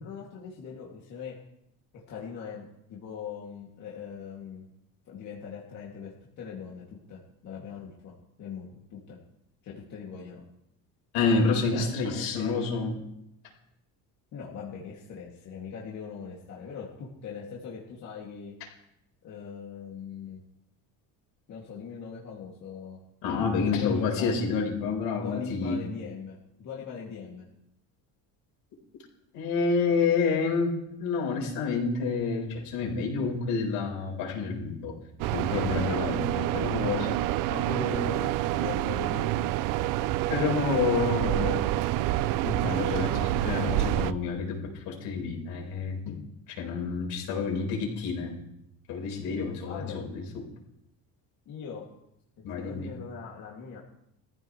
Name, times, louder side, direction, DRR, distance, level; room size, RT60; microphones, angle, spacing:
voice 1, 0.0-1.4 1.9-4.7 5.1-9.2 9.6-10.4 11.7-12.6 14.3-18.5 19.2-20.4 21.5-23.0 23.5-24.3 25.1-27.4 35.9-36.3 37.1-37.2 37.5-39.5 49.7-50.0 51.5-51.9 52.5-53.8, left 6 dB, 45° left, -4 dB, 2.7 m, -40 dB
voice 2, 11.1-13.0 23.2-25.8 29.3-30.7 31.0-34.9 35.3-37.1 40.3-41.7 42.4-44.6 44.8-46.2 46.6-48.4 48.9-50.2 52.4-52.9, left 4 dB, 75° left, 0 dB, 5.0 m, -28 dB
sound 1, 35.2-44.1, right 14 dB, 60° right, 0.5 m, -27 dB
22.5 x 15.0 x 3.3 m, 0.79 s
cardioid pair, 175°, 38 cm